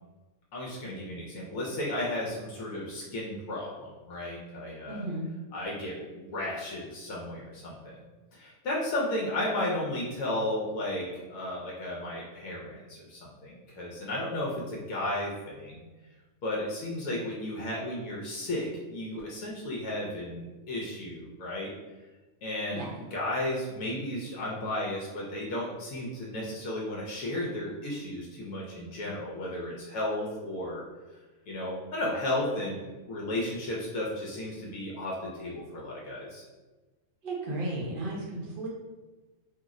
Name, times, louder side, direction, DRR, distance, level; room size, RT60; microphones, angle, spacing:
voice 1, 0.5-5.0 5.5-8.0 8.3-15.8 16.4-21.7 22.4-30.8 31.5-32.8 33.1-36.4, left 1 dB, 75° left, -4 dB, 1.0 m, -34 dB
voice 2, 4.9-5.3 22.7-23.0 37.2-38.7, right 2 dB, 50° right, -3 dB, 0.7 m, -34 dB
2.7 x 2.0 x 3.5 m, 1.2 s
omnidirectional pair, 1.6 m